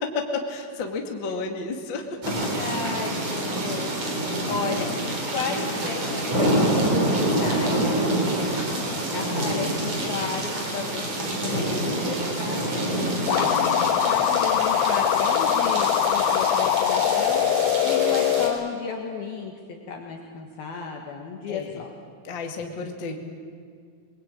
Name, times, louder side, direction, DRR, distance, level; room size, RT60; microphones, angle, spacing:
voice 1, 0.0-2.2 11.4-12.1 13.3-13.8 21.5-21.8 22.2-23.1, left 4 dB, 40° left, 3 dB, 1.9 m, -32 dB
sound 1, 2.2-18.5, right 1 dB, 35° right, 4.9 m, -27 dB
voice 2, 2.6-4.0 4.5-7.9 8.1-8.4 9.1-12.8 13.3-17.5 17.8-19.5 19.9-21.9, left 5 dB, 60° left, 1 dB, 3.2 m, -33 dB
sound 2, 13.3-18.5, left 10 dB, 80° left, 3.5 m, -22 dB
23.5 x 23.0 x 9.0 m, 2.1 s
omnidirectional pair, 5.4 m